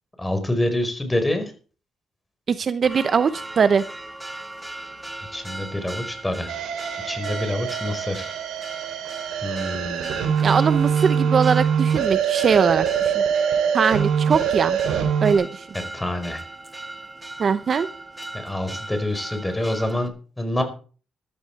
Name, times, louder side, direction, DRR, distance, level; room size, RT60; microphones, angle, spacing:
voice 1, 0.2-1.5 5.3-6.5 7.1-8.3 9.4-10.2 15.9-16.4 18.4-20.6, left 1 dB, 10° left, 7 dB, 4.9 m, -26 dB
voice 2, 2.5-3.8 10.4-13.2 13.7-14.8 15.2-15.7 17.4-17.9, right 6 dB, 45° right, 13 dB, 0.8 m, -21 dB
Church bell, 2.8-20.1, right 2 dB, 10° right, 1.6 m, -38 dB
sound 1, 6.5-15.3, right 7 dB, 85° right, 3.4 m, -23 dB
14.0 x 13.5 x 4.7 m, 0.40 s
cardioid pair, 90°, 0 cm